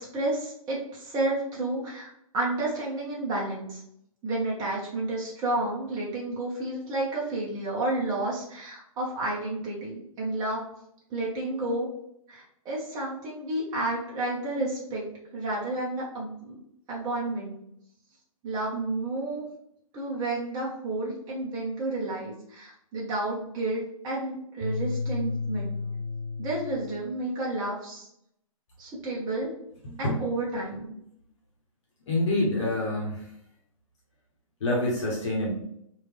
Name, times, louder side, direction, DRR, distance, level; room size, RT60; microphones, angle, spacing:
voice 1, 0.0-3.8 4.2-10.6 11.1-11.9 12.3-15.1 15.3-16.6 16.9-17.5 18.4-19.4 19.9-25.8 26.4-28.1 28.8-29.5 30.0-31.0, right 2 dB, 20° right, -5 dB, 0.9 m, -31 dB
sound 1, 24.6-27.1, left 4 dB, 70° right, 0.8 m, -32 dB
voice 2, 29.8-30.2 32.1-33.2 34.6-35.5, left 1 dB, 55° left, -4 dB, 1.1 m, -27 dB
3.3 x 2.6 x 3.3 m, 0.74 s
figure-of-eight pair, 120°, 18 cm